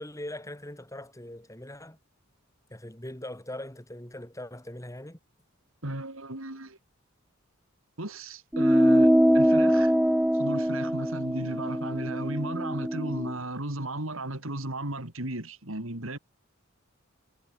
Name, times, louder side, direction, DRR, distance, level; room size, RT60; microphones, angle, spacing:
voice 1, 0.0-2.0 2.7-5.2, left 1 dB, 15° left, 6.5 m, -41 dB
voice 2, 5.8-6.8 8.0-9.9 10.3-16.2, right 1 dB, 75° right, 3.9 m, -35 dB
sound 1, 8.5-13.3, equal, 5° right, 1.5 m, -23 dB
head